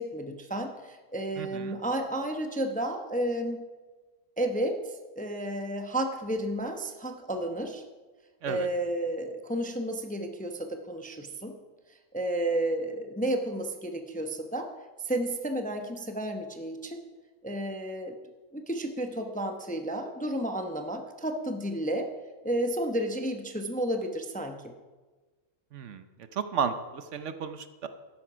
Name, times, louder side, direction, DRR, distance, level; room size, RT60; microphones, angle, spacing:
voice 1, 0.0-3.6 4.4-7.8 8.5-11.5 12.1-14.7 15.0-17.0 17.4-18.2 18.5-22.1 22.4-24.7, right 1 dB, 10° left, 5 dB, 0.6 m, -32 dB
voice 2, 1.4-1.8 8.4-8.7 25.7-26.0 26.3-27.9, right 6 dB, 65° right, 10 dB, 1.0 m, -33 dB
13.0 x 10.5 x 5.0 m, 1.3 s
omnidirectional pair, 1.4 m